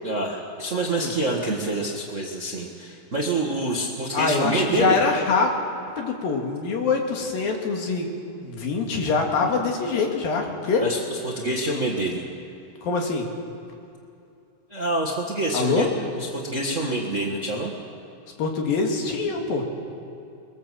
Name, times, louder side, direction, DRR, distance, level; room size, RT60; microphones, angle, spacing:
voice 1, 0.0-5.0 9.4-9.5 10.8-12.2 14.7-17.7, right 1 dB, 35° right, -1 dB, 1.2 m, -27 dB
voice 2, 4.1-5.5 6.0-8.1 8.4-10.8 12.8-13.3 15.5-15.9 18.4-19.7, left 4 dB, 80° left, 1 dB, 3.9 m, -24 dB
22.0 x 21.5 x 7.6 m, 2.7 s
omnidirectional pair, 4.0 m